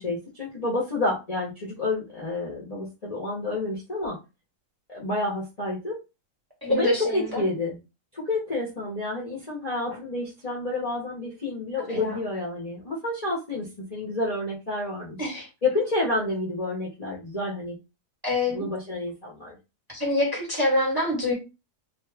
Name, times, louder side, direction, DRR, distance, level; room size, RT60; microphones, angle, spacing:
voice 1, 0.0-4.2 4.9-6.0 6.7-7.8 8.1-15.2 15.6-17.7 18.5-19.6, left 2 dB, 30° left, -5 dB, 0.8 m, -29 dB
voice 2, 6.6-7.4 11.9-12.2 15.2-15.5 18.2-18.6 19.9-21.3, left 2 dB, 15° right, -2 dB, 0.9 m, -25 dB
2.8 x 2.3 x 3.3 m, 0.27 s
omnidirectional pair, 1.8 m